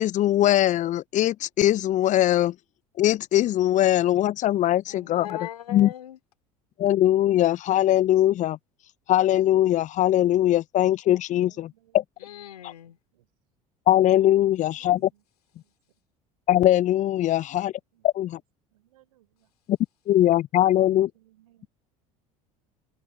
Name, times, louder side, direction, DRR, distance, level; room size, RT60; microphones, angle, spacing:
voice 1, 0.0-2.5 3.0-5.4 5.7-5.9 6.8-8.6 9.1-12.0 13.9-15.1 16.5-17.7 18.0-18.4 19.7-19.8 20.1-21.1, left 13 dB, 40° left, 0.5 m, -21 dB
voice 2, 4.9-6.2 12.2-13.0, left 11 dB, 80° left, 3.0 m, -39 dB
voice 3, 11.4-12.0 12.5-13.3 14.6-15.2 15.6-15.7 17.9-18.4 18.7-19.5 20.6-21.7, right 15 dB, 75° right, 4.8 m, -63 dB
hypercardioid pair, 70°, 19 cm